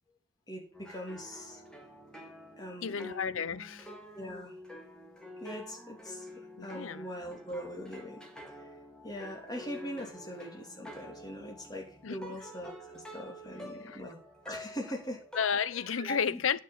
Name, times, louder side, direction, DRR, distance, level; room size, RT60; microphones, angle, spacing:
voice 1, 0.5-1.6 2.6-3.1 4.1-4.5 5.4-8.7 9.0-14.2 14.4-15.2 15.9-16.4, equal, 20° left, 2.9 m, -42 dB
sound 1, 0.7-15.9, equal, 5° left, 1.9 m, -48 dB
voice 2, 2.8-3.9 6.6-7.1 12.0-12.2 13.9-14.0 15.4-16.6, left 7 dB, 75° left, 0.6 m, -32 dB
9.3 x 6.1 x 7.4 m
head